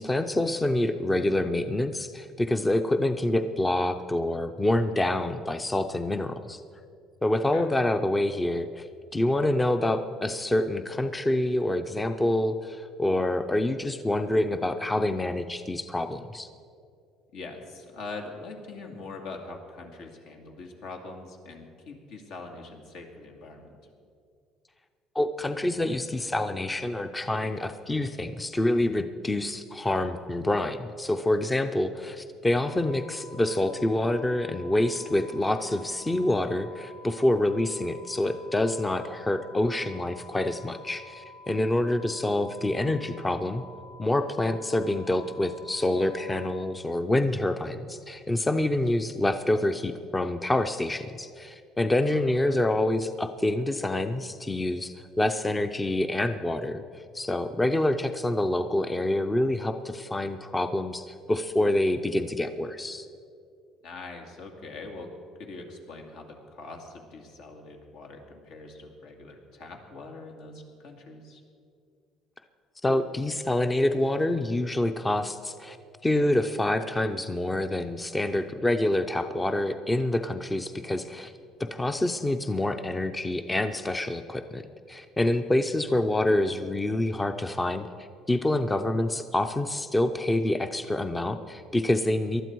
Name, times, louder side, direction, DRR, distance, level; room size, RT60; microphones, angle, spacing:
voice 1, 0.0-6.6 7.2-16.5 25.1-43.6 44.0-63.1 72.8-75.8 76.0-81.3 81.6-84.6 84.9-87.9 88.3-92.4, left 1 dB, 15° left, 8 dB, 0.6 m, -27 dB
voice 2, 1.0-1.5 7.5-7.7 17.3-23.7 52.1-52.6 63.8-65.1 65.4-71.4, left 3 dB, 75° left, 2 dB, 2.3 m, -43 dB
sound 1, 32.6-46.7, left 2 dB, 60° left, 1.0 m, -49 dB
19.0 x 12.0 x 4.6 m, 2.4 s
cardioid pair, 120°, 0 cm